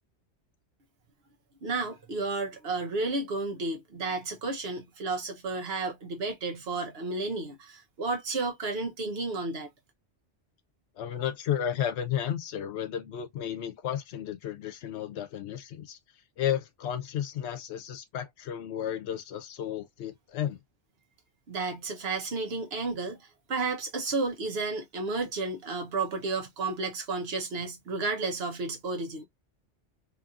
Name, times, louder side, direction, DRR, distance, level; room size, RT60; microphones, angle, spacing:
voice 1, 1.6-9.7 21.5-29.2, right 3 dB, 60° right, 1.0 m, -32 dB
voice 2, 11.0-16.0 16.4-20.6, left 10 dB, 70° left, 0.8 m, -33 dB
2.9 x 2.6 x 2.4 m
omnidirectional pair, 1.2 m